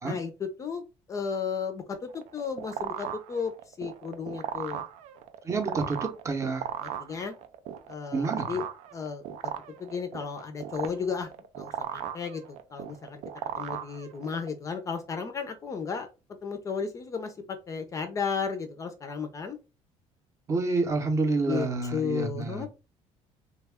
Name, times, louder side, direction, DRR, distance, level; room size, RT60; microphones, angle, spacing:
voice 1, 0.0-4.8 6.8-7.4 7.9-8.6 8.9-9.5 9.8-11.3 11.6-13.2 13.6-16.1 16.4-19.6 21.5-22.7, left 5 dB, 25° left, 0.5 m, -34 dB
sound 1, 2.1-14.5, right 10 dB, 85° right, 0.5 m, -37 dB
voice 2, 5.4-6.7 8.1-8.5 20.5-22.7, right 3 dB, 25° right, 0.7 m, -28 dB
3.3 x 2.2 x 3.4 m
cardioid pair, 155°, 12 cm